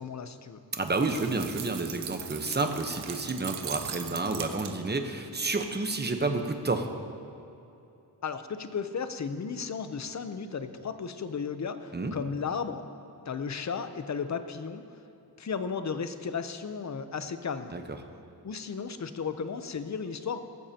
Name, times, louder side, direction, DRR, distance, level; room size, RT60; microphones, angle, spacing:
voice 1, 0.0-0.6 8.2-12.8 13.3-15.0 15.4-17.7 18.4-20.4, left 6 dB, 45° left, 10 dB, 0.7 m, -34 dB
voice 2, 0.7-6.9 11.9-12.2 17.7-17.8, right 3 dB, 25° right, 5 dB, 0.9 m, -30 dB
sound 1, 0.9-5.0, right 8 dB, 80° right, 0.7 m, -40 dB
17.0 x 14.5 x 2.9 m, 2.8 s
wide cardioid pair, 115°, 39 cm